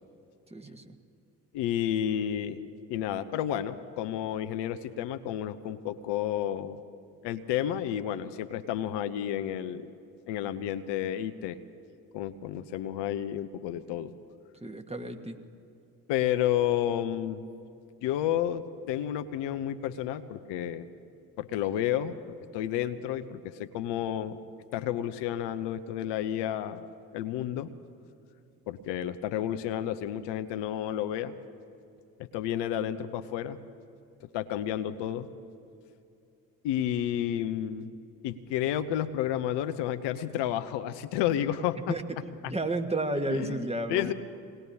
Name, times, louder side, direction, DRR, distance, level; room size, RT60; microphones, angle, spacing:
voice 1, 0.5-0.9 14.6-15.4 41.9-44.1, right 2 dB, 15° right, 4 dB, 1.5 m, -32 dB
voice 2, 1.5-2.6 2.9-6.8 7.2-9.9 10.3-11.6 12.1-14.1 16.1-17.4 18.0-20.9 21.4-24.4 24.7-26.8 27.1-27.7 28.7-31.3 32.2-33.6 34.3-35.3 36.6-37.9 38.2-42.0 42.4-42.5 43.3-44.1, left 11 dB, 65° left, 11 dB, 0.8 m, -31 dB
27.5 x 19.0 x 2.8 m, 2.6 s
figure-of-eight pair, 45°, 46 cm